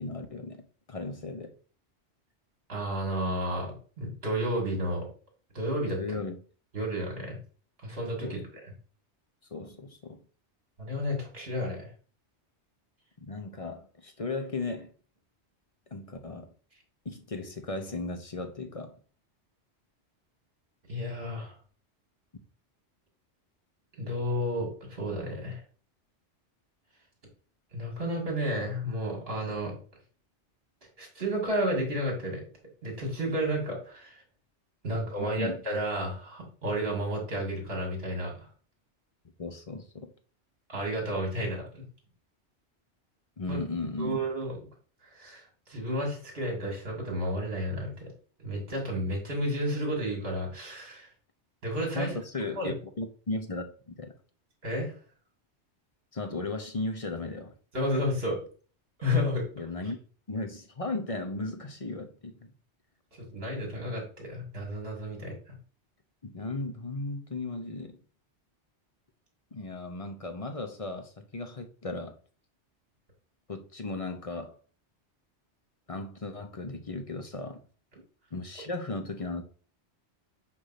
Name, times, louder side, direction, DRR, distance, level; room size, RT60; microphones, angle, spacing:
voice 1, 0.0-1.5 6.0-6.4 8.2-8.4 9.5-10.2 13.3-14.9 15.9-16.5 17.0-18.9 35.2-35.6 39.4-40.1 43.4-44.2 51.9-54.1 56.1-57.5 59.6-60.0 60.3-62.5 66.2-68.0 69.5-72.1 73.5-74.6 75.9-77.6 78.3-79.4, left 2 dB, 35° left, 0.8 m, -36 dB
voice 2, 2.7-5.1 5.5-6.0 6.7-7.4 7.8-8.7 10.8-11.9 20.9-21.6 24.0-25.6 27.7-29.8 31.0-32.4 32.8-34.2 34.8-38.5 40.7-41.8 43.5-43.6 44.0-44.6 45.1-48.1 48.4-51.1 51.6-52.2 52.6-52.7 54.6-54.9 57.7-58.4 59.0-59.4 63.2-65.5, equal, 55° right, 2.8 m, -32 dB
8.1 x 2.7 x 5.8 m
omnidirectional pair, 1.2 m